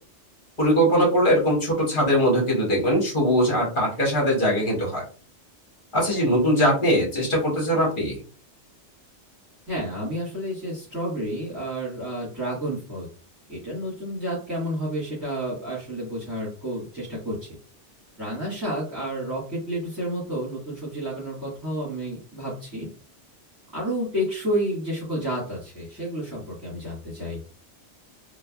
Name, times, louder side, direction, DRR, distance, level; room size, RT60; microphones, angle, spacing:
voice 1, 0.6-5.0 5.9-8.2, equal, 45° left, -3 dB, 1.2 m, -21 dB
voice 2, 9.7-13.1 13.5-17.5 18.2-22.9 23.7-27.4, equal, 15° right, -10 dB, 1.4 m, -30 dB
3.3 x 2.3 x 2.2 m, 0.38 s
omnidirectional pair, 1.2 m